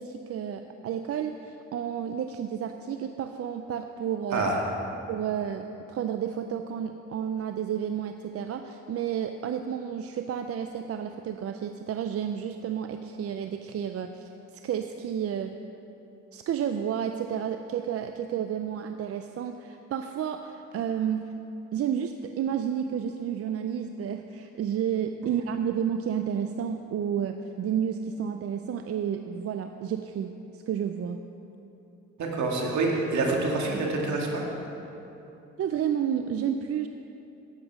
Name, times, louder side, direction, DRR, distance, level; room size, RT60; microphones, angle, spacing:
voice 1, 0.0-4.4 5.1-15.6 16.3-21.3 21.7-31.2 35.6-36.9, right 8 dB, 50° right, 7 dB, 0.5 m, -31 dB
voice 2, 32.2-34.5, right 3 dB, 70° right, 0 dB, 2.0 m, -26 dB
10.5 x 8.3 x 6.1 m, 2.9 s
cardioid pair, 90°, 30 cm